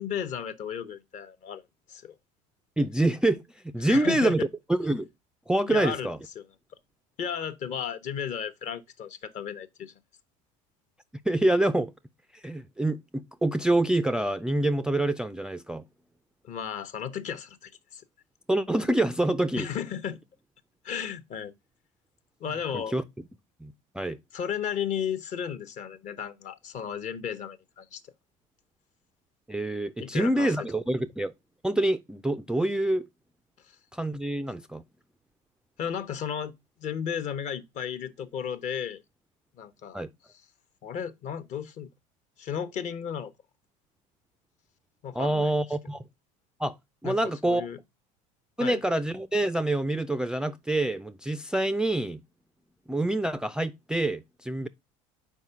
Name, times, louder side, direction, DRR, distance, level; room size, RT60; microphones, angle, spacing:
voice 1, 0.0-1.6 1.9-2.1 3.8-4.5 5.7-6.1 6.4-6.5 7.2-9.9 16.4-18.0 19.6-20.2 20.8-21.5 22.4-22.9 24.3-28.0 30.0-30.5 33.7-33.8 35.8-36.5 36.8-39.0 39.6-40.0 40.8-41.9 42.4-43.3 45.0-45.5 47.0-47.8 48.6-48.8, left 8 dB, 45° left, 0.9 m, -34 dB
voice 2, 2.8-5.1 5.5-6.2 11.3-11.9 12.4-15.8 18.5-19.7 22.7-23.0 23.6-24.2 29.5-31.3 31.6-33.0 33.9-34.8 39.9-40.1 45.1-46.0 46.6-46.8 47.0-47.7 48.6-52.2 52.9-54.7, right 1 dB, 5° right, 0.3 m, -26 dB
4.6 x 4.5 x 5.6 m
supercardioid pair, 105°, 16 cm